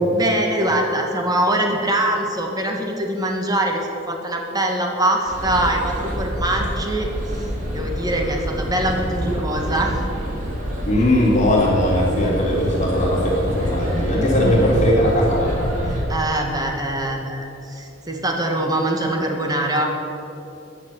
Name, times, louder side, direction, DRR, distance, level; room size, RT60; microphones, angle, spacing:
voice 1, 0.1-7.5 7.7-10.0 14.4-14.5 15.9-19.9, right 1 dB, 20° right, 1 dB, 2.1 m, -23 dB
sound 1, 5.3-16.0, equal, 40° right, 3.8 m, -27 dB
voice 2, 10.9-15.7, left 1 dB, 40° left, -4 dB, 3.4 m, -19 dB
14.0 x 9.7 x 9.5 m, 3.0 s
head